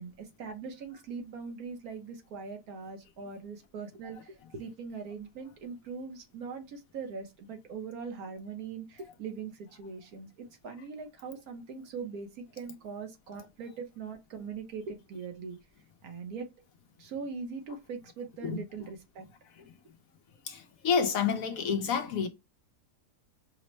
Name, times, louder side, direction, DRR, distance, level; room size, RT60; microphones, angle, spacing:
voice 1, 0.0-15.6 16.0-16.5 17.0-19.3, right 5 dB, 70° right, 1.3 m, -41 dB
voice 2, 20.4-22.3, left 6 dB, 70° left, 0.9 m, -29 dB
5.1 x 2.1 x 3.0 m
omnidirectional pair, 1.7 m